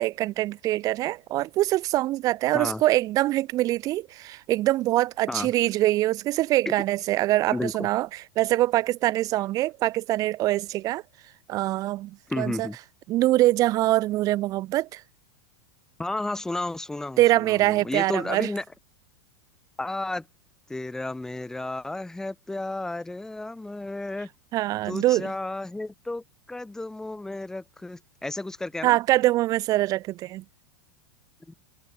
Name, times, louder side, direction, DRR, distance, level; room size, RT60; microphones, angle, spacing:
voice 1, 0.0-8.1 8.4-11.0 11.5-12.7 13.1-15.0 17.2-18.5 24.5-25.3 28.8-30.4, right 16 dB, 35° right, 1.3 m, -24 dB
voice 2, 7.5-7.9 12.3-12.8 16.0-18.6 19.8-20.3 20.7-24.3 24.9-29.0 31.5-31.6, left 2 dB, 5° left, 1.3 m, -32 dB
supercardioid pair, 135°, 10 cm